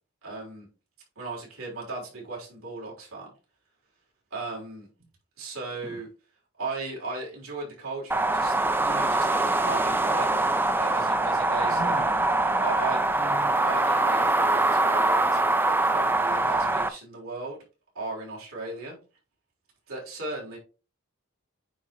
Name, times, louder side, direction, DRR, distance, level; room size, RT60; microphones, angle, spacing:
voice 1, 0.2-0.7 1.2-3.3 4.3-4.9 5.4-6.1 6.6-10.5 10.8-12.1 12.6-13.0 13.6-17.6 18.0-19.0 19.9-20.6, right 3 dB, 80° right, 3.5 m, -36 dB
sound 1, 8.1-16.9, right 2 dB, 10° right, 0.4 m, -23 dB
voice 2, 11.7-12.1 13.2-13.6, right 1 dB, 40° right, 2.1 m, -38 dB
9.1 x 3.8 x 3.0 m
head